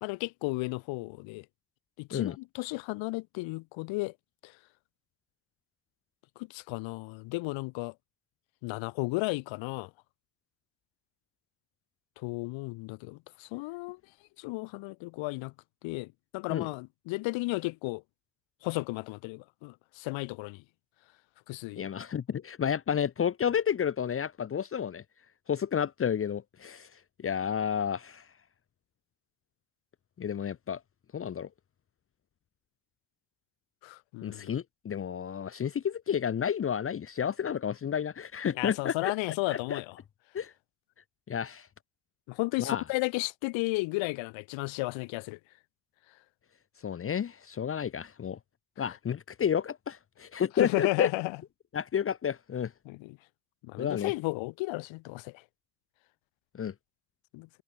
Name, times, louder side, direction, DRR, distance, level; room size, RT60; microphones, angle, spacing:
voice 1, 0.0-1.5 2.0-4.1 4.4-4.6 6.4-7.9 8.6-9.9 12.2-14.0 14.4-15.5 15.8-18.0 18.6-20.6 21.5-21.9 33.8-34.5 38.6-40.0 42.3-45.4 48.8-49.0 50.6-51.4 52.9-53.2 53.6-55.4 57.3-57.5, left 23 dB, 80° left, 2.2 m, -34 dB
voice 2, 21.8-25.0 25.5-28.3 30.2-30.8 31.1-31.5 34.2-39.1 39.5-39.8 40.3-40.5 41.3-41.7 42.6-42.8 46.8-48.4 48.8-51.1 51.7-52.7 53.8-54.1 56.5-56.7, left 8 dB, 30° left, 1.1 m, -31 dB
cardioid pair, 125°, 46 cm